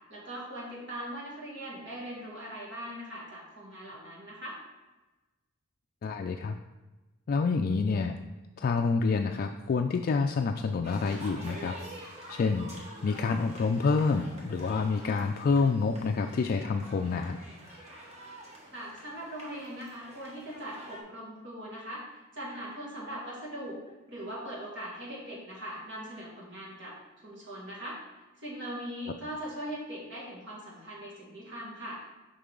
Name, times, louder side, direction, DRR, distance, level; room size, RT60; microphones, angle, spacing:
voice 1, 0.1-4.6 18.7-23.8 24.1-27.0 27.2-28.0 28.4-32.0, equal, 60° right, -4 dB, 2.2 m, -40 dB
voice 2, 6.0-6.6 7.3-8.2 8.6-11.7 12.3-12.7 13.0-17.4, left 4 dB, 45° left, 5 dB, 0.3 m, -27 dB
sound 1, 10.8-21.0, right 1 dB, 30° right, 1.3 m, -47 dB
6.7 x 5.4 x 3.8 m, 1.1 s
head